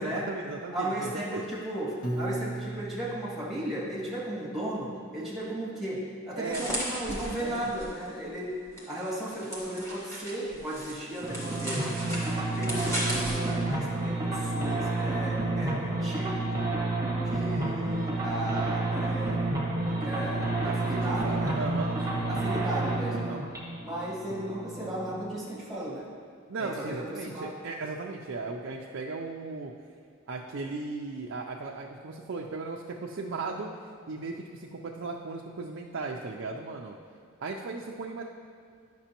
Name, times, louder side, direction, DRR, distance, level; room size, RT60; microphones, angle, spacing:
voice 1, 0.0-1.4 6.4-6.7 7.4-7.7 20.6-22.4 23.1-23.4 26.5-29.7 30.3-33.7 34.1-37.0 37.4-38.2, right 3 dB, 65° right, -1 dB, 0.5 m, -36 dB
voice 2, 0.7-8.6 8.9-11.9 12.5-16.5 17.2-19.4 19.8-21.6 22.3-23.4 23.8-26.1 26.6-27.5, right 1 dB, ahead, -7 dB, 1.8 m, -35 dB
Piano, 2.0-4.2, right 1 dB, 70° left, 1.2 m, -36 dB
sound 1, 6.4-8.1 8.8-13.5, equal, 15° left, 1.5 m, -36 dB
sound 2, 11.2-25.3, right 2 dB, 15° right, 1.2 m, -30 dB
10.0 x 6.0 x 2.9 m, 2.3 s
head